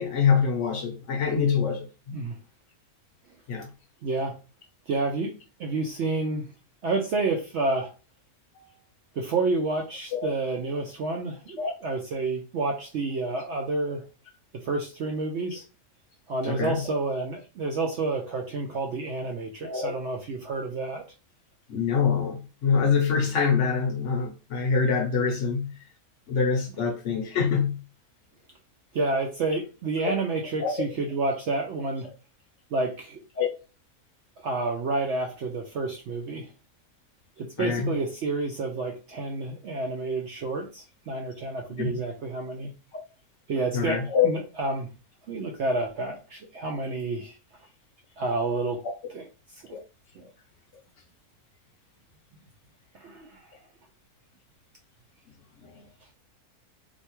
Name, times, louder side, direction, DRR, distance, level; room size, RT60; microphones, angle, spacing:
voice 1, 0.0-1.9 3.5-3.7 8.6-8.7 10.1-10.3 11.6-11.7 16.4-17.0 19.6-20.0 21.7-25.7 26.3-27.8 30.0-30.1 30.6-30.7 33.4-33.5 37.6-37.9 41.8-41.9 43.7-44.3 49.7-49.8 55.6-55.8, left 6 dB, 60° left, 0.9 m, -25 dB
voice 2, 4.0-4.4 4.9-6.5 6.8-7.9 9.2-14.0 14.5-15.6 16.3-21.0 28.9-32.1 32.7-33.2 34.4-36.5 37.4-42.7 43.5-44.9 45.3-47.4 48.2-48.8 49.1-49.3 49.7-49.8 50.2-50.3 52.9-53.5, right 3 dB, 65° right, 0.7 m, -29 dB
3.2 x 2.7 x 2.9 m
omnidirectional pair, 1.6 m